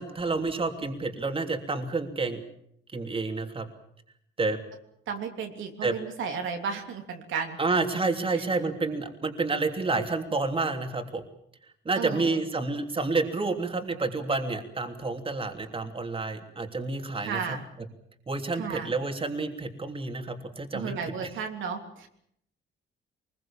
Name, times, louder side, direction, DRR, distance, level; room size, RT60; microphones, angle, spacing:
voice 1, 0.0-2.4 2.9-3.7 4.4-4.6 5.8-5.9 7.6-11.2 11.8-17.6 18.3-20.9, right 3 dB, 25° right, 5 dB, 3.2 m, -29 dB
voice 2, 5.1-7.6 8.3-8.4 11.9-12.3 17.2-17.6 18.6-18.9 20.7-22.1, right 6 dB, 80° right, 3 dB, 3.2 m, -33 dB
23.5 x 21.5 x 7.4 m, 0.71 s
cardioid pair, 90°, 20 cm